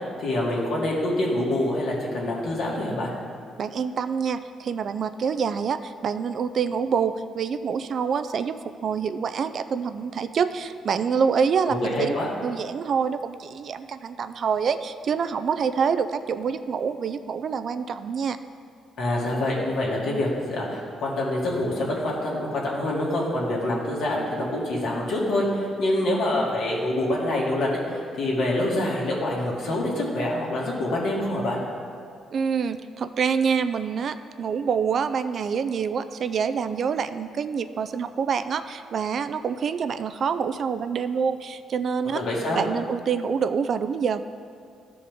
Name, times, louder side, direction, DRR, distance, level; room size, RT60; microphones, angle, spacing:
voice 1, 0.2-3.1 11.7-12.3 19.0-31.6 42.1-42.6, left 1 dB, 75° left, -4 dB, 2.1 m, -26 dB
voice 2, 3.6-12.1 12.4-18.4 32.3-42.2 42.5-44.2, right 6 dB, 55° right, 11 dB, 0.3 m, -26 dB
13.5 x 4.9 x 3.6 m, 2.3 s
cardioid pair, 90°, 0 cm